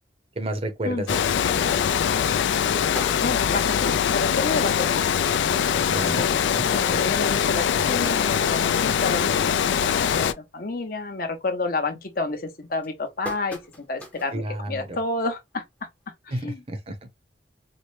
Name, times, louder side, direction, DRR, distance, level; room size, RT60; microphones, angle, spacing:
voice 1, 0.4-1.8 5.9-6.7 14.3-15.0 16.3-17.0, right 1 dB, 30° right, 0.6 m, -31 dB
Water, 1.1-10.3, left 8 dB, 75° left, 0.3 m, -22 dB
sound 1, 2.9-3.8 4.3-4.4 4.7-4.8 5.1-5.3 6.0-6.1 6.6-6.7 7.5-10.3 10.7-11.0 11.4-11.8 12.4-14.4 14.8-14.9 16.1-16.2, left 1 dB, 10° left, 0.6 m, -40 dB
voice 2, 3.2-5.1 5.7-5.8 6.1-6.4 6.7-13.6 13.9-15.6 16.3-16.6, left 3 dB, 50° left, 0.8 m, -30 dB
4.3 x 2.1 x 3.1 m
head